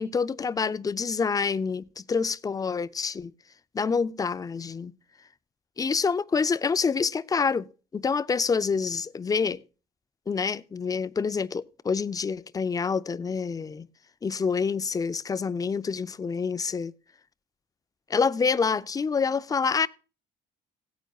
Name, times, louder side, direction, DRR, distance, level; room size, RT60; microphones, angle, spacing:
voice 1, 0.0-3.3 3.7-4.9 5.8-7.7 7.9-9.6 10.3-13.9 14.2-16.9 18.1-19.9, left 5 dB, 20° left, 0.5 m, -27 dB
16.5 x 9.2 x 2.3 m
cardioid pair, 110°, 17 cm